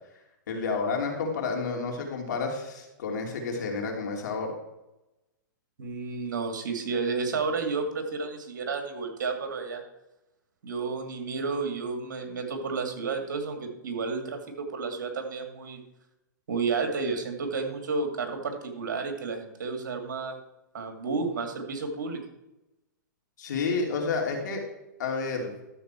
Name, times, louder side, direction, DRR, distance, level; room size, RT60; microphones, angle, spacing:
voice 1, 0.5-4.5 23.4-24.6 25.0-25.5, left 4 dB, 70° left, 1 dB, 3.0 m, -30 dB
voice 2, 5.8-9.8 10.6-15.8 16.5-20.4 20.7-22.2, right 4 dB, 75° right, 4 dB, 2.4 m, -31 dB
12.5 x 6.9 x 4.5 m, 0.93 s
hypercardioid pair, 135°, 10 cm